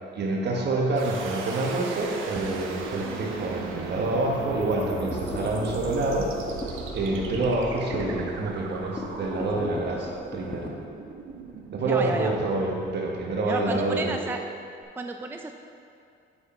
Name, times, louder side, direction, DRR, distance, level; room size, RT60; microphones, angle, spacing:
voice 1, 0.1-6.3 6.9-10.7 11.7-14.2, right 2 dB, 60° right, 0 dB, 1.3 m, -27 dB
sound 1, 1.0-13.9, right 5 dB, 80° right, 0.8 m, -38 dB
sound 2, 4.5-10.7, left 1 dB, 25° left, 1.1 m, -37 dB
voice 2, 11.8-12.3 13.4-14.4 15.0-15.5, right 3 dB, 10° right, 5 dB, 0.3 m, -31 dB
8.6 x 4.8 x 4.3 m, 2.4 s
cardioid pair, 90°, 20 cm